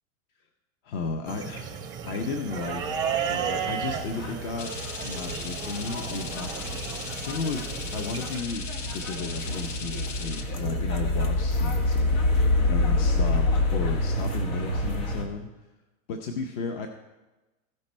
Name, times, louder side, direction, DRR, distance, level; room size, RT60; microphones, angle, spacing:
voice 1, 0.8-1.8 2.1-2.8 3.3-4.7 5.0-7.7 7.9-13.5 13.7-15.5 16.1-16.9, left 4 dB, 45° left, 5 dB, 0.7 m, -34 dB
sound 1, 1.3-8.4, right 7 dB, 10° right, 0.5 m, -34 dB
sound 2, 2.5-15.2, left 2 dB, 85° left, 1.8 m, -28 dB
sound 3, 4.6-10.4, left 5 dB, 65° left, 1.3 m, -38 dB
15.0 x 5.3 x 4.3 m, 1.1 s
hypercardioid pair, 135°, 40 cm